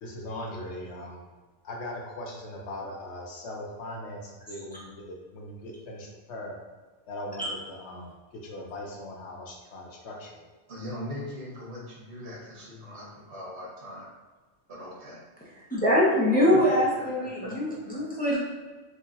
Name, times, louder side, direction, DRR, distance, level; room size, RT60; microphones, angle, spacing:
voice 1, 0.0-1.2 1.6-6.5 7.1-8.1 8.4-10.5, left 1 dB, 85° left, -1 dB, 1.0 m, -39 dB
voice 2, 10.7-14.1 14.7-15.2 17.4-17.5, left 1 dB, 80° right, -5 dB, 1.4 m, -40 dB
voice 3, 15.7-18.4, equal, 10° left, -7 dB, 0.9 m, -23 dB
4.5 x 2.7 x 2.6 m, 1.3 s
omnidirectional pair, 1.1 m